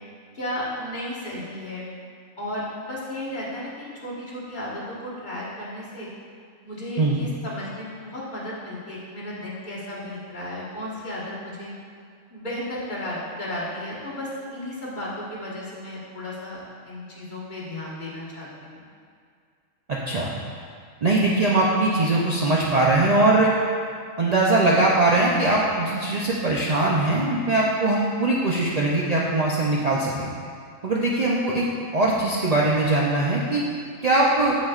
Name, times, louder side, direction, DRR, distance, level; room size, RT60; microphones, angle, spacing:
voice 1, 0.3-1.9 2.4-6.1 6.6-11.7 12.3-18.8, left 1 dB, 35° left, -8 dB, 1.5 m, -34 dB
voice 2, 19.9-20.3 21.0-23.6 24.2-30.3 30.8-31.6 31.9-33.7 34.0-34.5, right 2 dB, 75° right, -4 dB, 0.3 m, -21 dB
7.6 x 6.3 x 2.4 m, 2.2 s
omnidirectional pair, 1.4 m